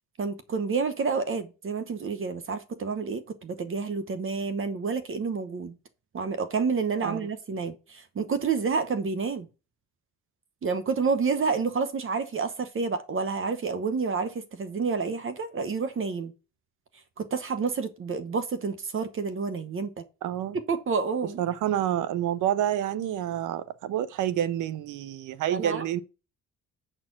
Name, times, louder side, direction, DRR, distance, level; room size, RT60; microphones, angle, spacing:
voice 1, 0.2-5.7 6.1-9.5 10.6-16.3 17.2-20.0 20.5-21.4 25.5-26.0, right 5 dB, 45° right, 1.0 m, -29 dB
voice 2, 20.2-20.6 21.4-26.0, right 11 dB, 85° right, 0.7 m, -28 dB
7.4 x 4.5 x 5.9 m
cardioid pair, 90°, 30 cm